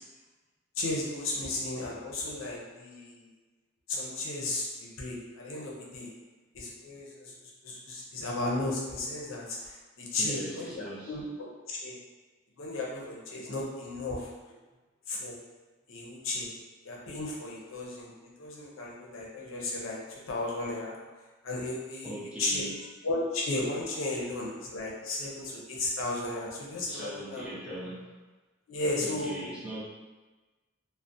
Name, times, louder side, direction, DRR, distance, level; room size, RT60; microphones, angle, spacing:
voice 1, 0.8-3.3 3.9-6.1 6.5-7.3 7.6-12.0 12.6-14.3 15.1-15.4 15.9-16.5 16.8-21.0 21.4-22.1 22.4-22.6 23.0-27.5 28.7-29.4, left 2 dB, 85° left, -3 dB, 0.5 m, -34 dB
voice 2, 10.2-11.2 22.0-22.9 26.9-28.1 29.0-29.8, right 1 dB, 5° right, -8 dB, 0.4 m, -40 dB
2.4 x 2.1 x 2.5 m, 1.2 s
head